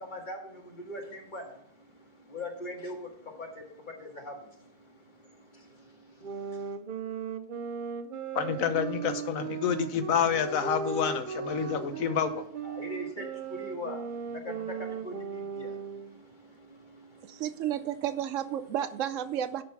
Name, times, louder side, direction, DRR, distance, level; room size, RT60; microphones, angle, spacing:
voice 1, 0.0-6.8 11.6-12.2 12.6-18.0, left 1 dB, 35° left, 0 dB, 1.9 m, -43 dB
sound 1, 6.2-16.2, right 5 dB, 55° right, 0.6 m, -37 dB
voice 2, 8.3-12.4, left 7 dB, 85° left, 8 dB, 1.3 m, -28 dB
voice 3, 17.2-19.6, right 10 dB, 75° right, 13 dB, 0.9 m, -32 dB
11.5 x 4.1 x 5.7 m, 0.67 s
omnidirectional pair, 1.4 m